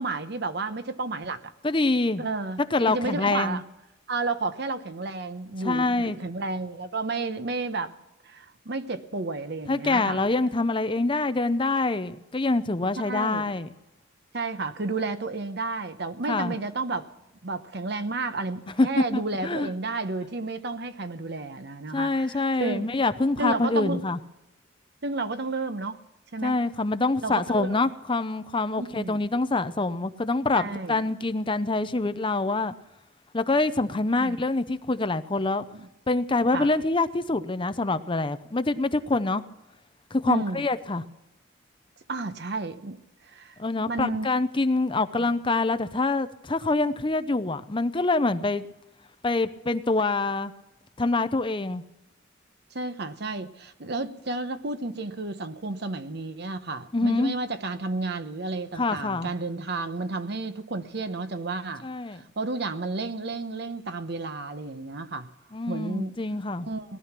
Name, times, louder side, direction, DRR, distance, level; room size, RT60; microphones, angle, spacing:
voice 1, 0.0-1.5 2.2-3.6 4.1-7.9 8.2-10.2 13.0-13.5 14.3-17.1 17.4-22.9 23.4-24.0 25.0-26.0 26.3-26.6 27.2-27.8 28.8-29.2 30.5-31.0 34.2-34.4 35.7-35.9 36.5-36.7 40.3-40.6 42.1-43.6 43.9-44.3 52.7-61.9 62.1-65.3 65.7-66.2 66.6-67.0, right 3 dB, 60° right, 1.0 m, -32 dB
voice 2, 1.6-2.2 2.7-3.6 5.6-6.2 9.7-13.7 16.3-16.5 18.8-19.7 21.9-24.2 26.4-32.7 33.3-35.7 36.1-39.4 40.1-41.0 43.6-48.6 49.2-50.5 51.0-51.8 56.9-57.3 58.8-59.3 61.8-62.2 65.5-66.7, left 2 dB, 25° left, 0.6 m, -25 dB
19.0 x 12.0 x 6.0 m
head